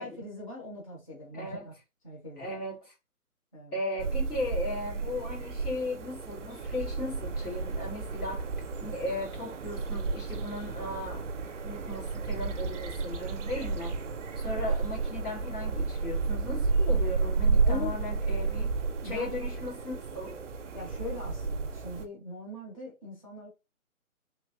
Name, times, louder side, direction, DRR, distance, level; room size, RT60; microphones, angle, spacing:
voice 1, 0.0-1.7 2.0-2.5 3.5-3.8 17.6-18.0 19.0-19.4 20.7-23.5, left 2 dB, 25° left, 0.7 m, -41 dB
voice 2, 1.3-1.7 2.4-2.9 3.7-8.4 8.8-11.2 11.6-14.0 14.4-18.7 19.0-20.3, left 1 dB, 85° left, 1.9 m, -37 dB
sound 1, 4.0-22.0, right 4 dB, 55° right, 0.5 m, -31 dB
3.2 x 2.7 x 2.4 m
figure-of-eight pair, 145°, 43 cm